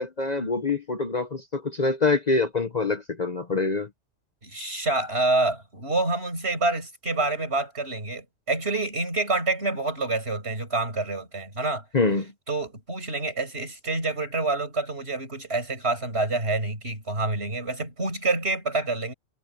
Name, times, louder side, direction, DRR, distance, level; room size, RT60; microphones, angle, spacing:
voice 1, 0.0-3.9 11.9-12.3, left 3 dB, 35° left, 1.0 m, -25 dB
voice 2, 4.4-11.8 12.5-19.1, right 2 dB, 55° right, 6.4 m, -27 dB
omnidirectional pair, 1.3 m